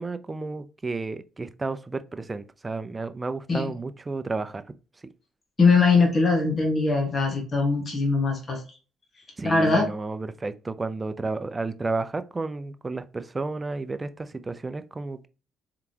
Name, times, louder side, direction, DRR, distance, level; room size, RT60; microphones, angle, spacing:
voice 1, 0.0-4.6 9.4-15.3, right 3 dB, 25° right, 0.5 m, -32 dB
voice 2, 5.6-8.6 9.4-9.9, left 4 dB, 40° left, 1.6 m, -21 dB
4.7 x 3.7 x 2.9 m
cardioid pair, 90°, 0 cm